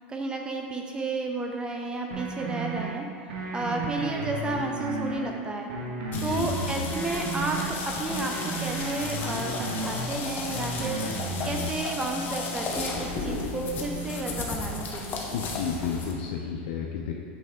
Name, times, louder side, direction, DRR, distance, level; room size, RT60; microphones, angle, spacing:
voice 1, 0.0-3.1 3.5-5.7 6.2-7.6 7.8-15.3, right 2 dB, 15° right, 2 dB, 0.4 m, -32 dB
sound 1, 2.1-2.9 3.3-5.3 5.7-7.7 8.1-10.1 10.5-11.7, right 2 dB, 65° right, 1.2 m, -33 dB
voice 2, 6.1-6.5 15.3-17.2, left 6 dB, 65° left, -1 dB, 0.5 m, -31 dB
sound 2, 6.1-16.1, left 3 dB, 30° left, 0.8 m, -34 dB
8.3 x 3.3 x 3.5 m, 2.2 s
supercardioid pair, 140°, 6 cm